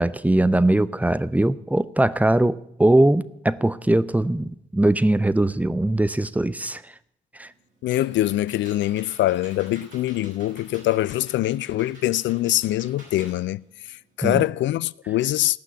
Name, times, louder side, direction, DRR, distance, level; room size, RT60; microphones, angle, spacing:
voice 1, 0.0-6.8 7.3-7.5 14.2-14.4, right 1 dB, 5° right, 0.7 m, -21 dB
Computer keyboard, 7.4-14.2, right 1 dB, 70° right, 6.7 m, -49 dB
voice 2, 7.8-13.6 13.9-15.6, left 15 dB, 65° left, 0.4 m, -24 dB
17.0 x 6.0 x 8.1 m
hypercardioid pair, 40°, 21 cm